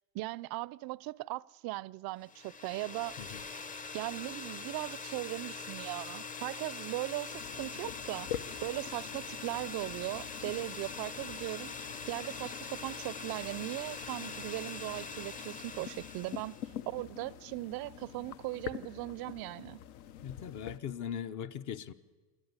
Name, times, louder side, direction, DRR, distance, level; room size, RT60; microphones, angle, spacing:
voice 1, 0.1-3.2 3.9-8.3 8.6-11.7 12.1-16.6 16.9-19.8, right 20 dB, 55° right, 0.5 m, -38 dB
sound 1, 2.3-16.7, left 4 dB, 20° left, 0.8 m, -43 dB
sound 2, 7.3-20.8, left 10 dB, 70° left, 1.2 m, -46 dB
voice 2, 20.2-21.9, left 8 dB, 45° left, 1.0 m, -40 dB
27.0 x 12.0 x 9.6 m
supercardioid pair, 125°, 44 cm